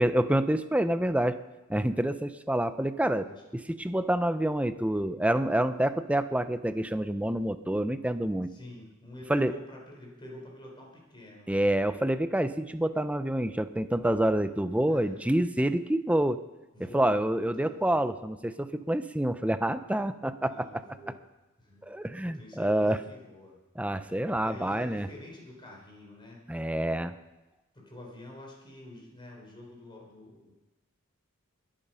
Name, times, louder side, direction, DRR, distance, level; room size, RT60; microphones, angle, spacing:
voice 1, 0.0-1.4 1.7-3.2 3.7-8.5 9.3-9.5 11.5-16.4 16.9-20.8 21.9-23.0 23.8-25.1 26.5-27.2, right 1 dB, 5° right, 11 dB, 0.6 m, -27 dB
voice 2, 3.0-3.4 8.5-11.5 14.9-15.2 16.7-18.1 20.4-21.2 21.6-21.9 22.2-23.6 24.1-26.4 27.7-30.5, left 1 dB, 20° left, -1 dB, 4.1 m, -47 dB
21.5 x 8.9 x 5.6 m, 1.1 s
head